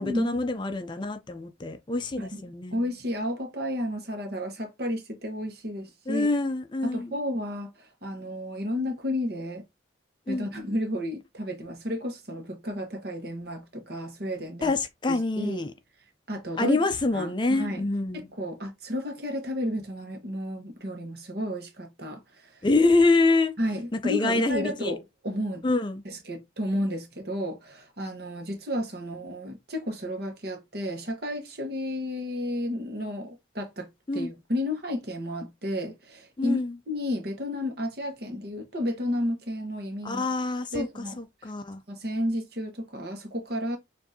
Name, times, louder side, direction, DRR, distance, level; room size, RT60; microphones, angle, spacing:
voice 1, 0.0-2.8 6.1-7.2 10.3-10.5 14.6-15.7 16.6-18.3 22.6-23.5 23.9-24.9 25.6-26.0 34.1-34.3 36.4-36.8 40.0-41.8, left 2 dB, 25° left, 0.4 m, -26 dB
voice 2, 2.7-6.3 6.8-7.7 8.0-9.6 10.3-14.8 15.1-15.7 16.3-16.8 17.1-17.3 17.6-17.8 18.1-22.6 23.6-25.0 25.2-25.6 26.0-36.6 36.9-40.2 40.7-41.2 41.9-43.8, left 1 dB, 55° right, 1.2 m, -32 dB
6.9 x 2.6 x 2.7 m
head